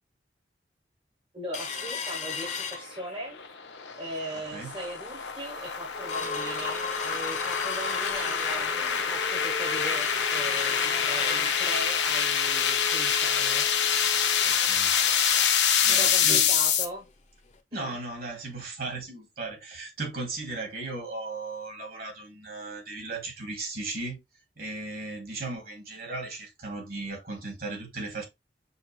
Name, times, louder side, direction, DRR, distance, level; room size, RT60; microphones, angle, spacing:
voice 1, 1.3-3.4 4.0-8.7 9.0-13.7 15.9-17.0 17.7-18.0, right 1 dB, 30° right, 0.9 m, -39 dB
sound 1, 1.5-3.4 3.8-3.9 4.2-4.6 5.1-5.2 5.5-16.0 16.4-16.5 16.8-17.0 17.5-17.6, left 4 dB, 40° left, 0.7 m, -36 dB
sound 2, 2.9-16.8, left 7 dB, 90° left, 0.8 m, -26 dB
voice 2, 14.4-15.3 15.8-16.5 17.7-24.2 24.6-28.2, right 3 dB, 55° right, 2.1 m, -36 dB
6.2 x 2.4 x 3.0 m
head